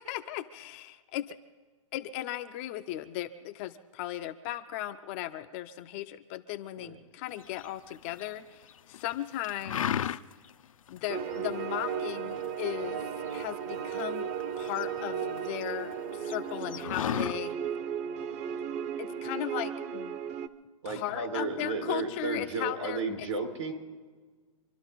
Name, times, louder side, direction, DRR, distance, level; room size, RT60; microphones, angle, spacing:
voice 1, 0.0-1.4 1.9-10.2 10.9-14.3 14.6-17.6 19.0-20.2 20.9-23.1, left 13 dB, 20° left, 8 dB, 0.4 m, -37 dB
sound 1, 7.5-8.3 8.7-9.1 9.4-10.5 10.9-11.0 11.3-11.8 12.3-14.1 14.4-15.6 15.9-16.0 16.2-17.4, left 9 dB, 85° left, 0.6 m, -33 dB
sound 2, 11.1-20.5, right 7 dB, 30° right, 0.7 m, -35 dB
voice 2, 20.8-23.7, right 3 dB, 70° right, 2 dB, 4.9 m, -33 dB
26.0 x 12.0 x 4.0 m, 1.4 s
hypercardioid pair, 165°, 17 cm